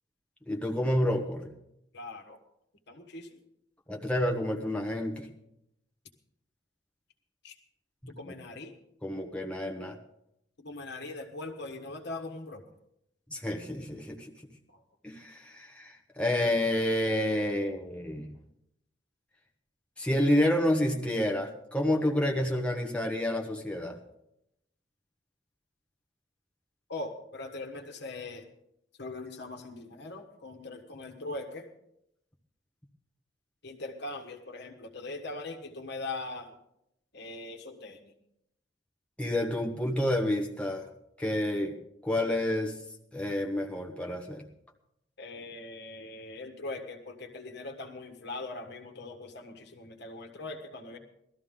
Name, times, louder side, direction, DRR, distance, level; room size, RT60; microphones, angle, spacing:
voice 1, 0.5-1.5 3.9-5.3 8.0-8.3 9.0-10.0 13.3-14.3 15.0-18.3 20.0-24.0 39.2-40.9 41.2-41.7 42.0-42.8 43.1-44.4, left 1 dB, 5° left, 1 dB, 1.3 m, -29 dB
voice 2, 1.9-2.4 2.9-3.3 7.4-7.5 8.1-8.7 10.6-12.6 14.7-14.8 26.9-28.5 29.0-31.7 33.6-36.5 37.1-38.1 45.2-51.0, left 2 dB, 65° left, 5 dB, 1.5 m, -41 dB
18.5 x 13.0 x 3.8 m, 0.78 s
head